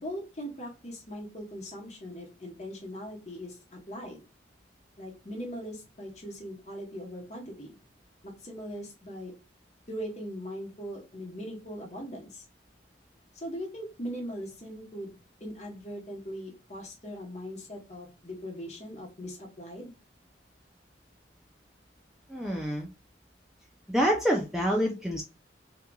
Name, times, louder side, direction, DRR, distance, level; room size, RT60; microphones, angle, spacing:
voice 1, 0.0-4.2 5.0-7.8 8.2-9.3 9.9-12.4 13.3-15.1 15.4-19.9, equal, 40° left, 0 dB, 1.0 m, -40 dB
voice 2, 22.3-22.9 23.9-25.2, equal, ahead, -1 dB, 0.3 m, -27 dB
2.9 x 2.4 x 2.3 m, 0.28 s
head